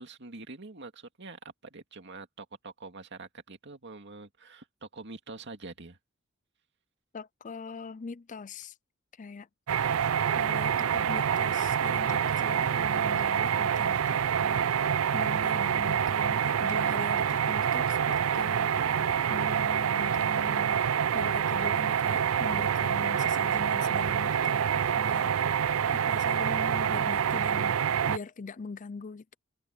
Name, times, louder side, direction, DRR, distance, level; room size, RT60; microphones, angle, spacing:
voice 1, 0.0-6.0, right 3 dB, 60° right, 2.3 m, -45 dB
voice 2, 7.1-8.7 9.2-9.5 9.8-10.0 10.3-25.6 25.9-29.4, left 4 dB, 40° left, 0.5 m, -42 dB
sound 1, 9.7-28.2, right 8 dB, 90° right, 0.4 m, -27 dB
head